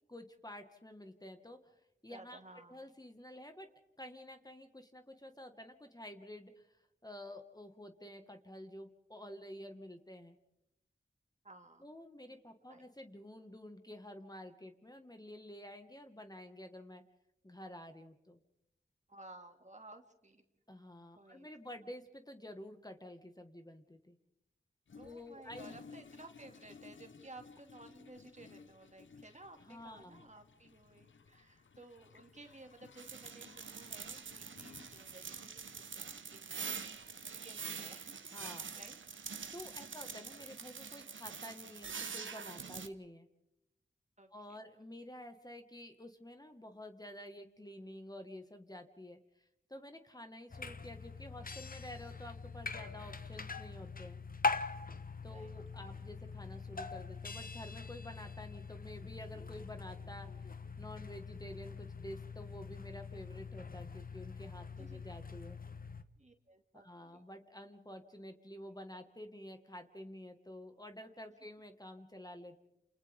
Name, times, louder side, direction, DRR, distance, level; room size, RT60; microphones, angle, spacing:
voice 1, 0.1-2.4 2.7-3.7 4.0-10.4 11.8-17.0 17.4-18.4 20.7-24.2 25.0-25.7 29.7-30.2 38.3-38.8 39.5-43.3 44.3-54.2 55.2-65.6 66.7-72.7, left 1 dB, 20° left, 6 dB, 1.7 m, -50 dB
voice 2, 2.1-2.8 11.4-11.8 12.7-12.9 19.1-20.4 21.1-21.5 25.0-38.3 38.7-39.0 39.9-40.1 44.2-44.6 55.3-55.6 64.8-65.0 66.2-67.2, right 2 dB, 40° right, 4 dB, 2.4 m, -56 dB
Toilet flush, 24.9-37.7, left 5 dB, 80° left, 0.9 m, -58 dB
sound 1, 33.0-42.9, right 6 dB, 90° right, 0.9 m, -45 dB
sound 2, 50.5-66.0, left 4 dB, 50° left, 1.1 m, -43 dB
28.5 x 28.5 x 3.6 m, 0.86 s
cardioid pair, 45°, 19 cm